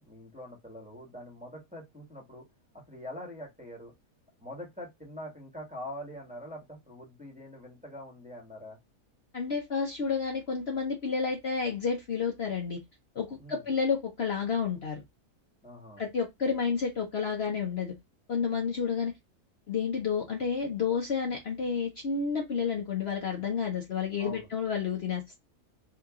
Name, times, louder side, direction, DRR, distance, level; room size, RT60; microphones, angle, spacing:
voice 1, 0.0-2.4 2.7-3.9 4.4-8.8 13.4-13.6 15.6-16.0 24.2-24.5, left 1 dB, 5° right, 1.2 m, -44 dB
voice 2, 9.3-12.8 13.1-15.0 16.0-17.9 18.3-19.1 19.7-25.3, left 6 dB, 50° left, 1.0 m, -30 dB
2.9 x 2.9 x 3.5 m
omnidirectional pair, 1.6 m